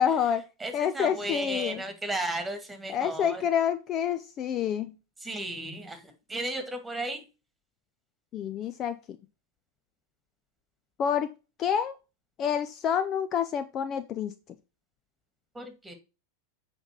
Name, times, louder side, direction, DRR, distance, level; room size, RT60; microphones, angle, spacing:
voice 1, 0.0-0.4 0.7-1.8 2.9-4.9 8.3-9.0 11.0-11.3 11.6-11.9 12.4-14.3, left 8 dB, 30° left, 11 dB, 0.6 m, -28 dB
voice 2, 0.6-3.4 5.2-7.2 15.6-15.9, right 1 dB, 10° right, 7 dB, 2.1 m, -34 dB
8.0 x 5.3 x 4.5 m, 0.30 s
figure-of-eight pair, 90°, 0 cm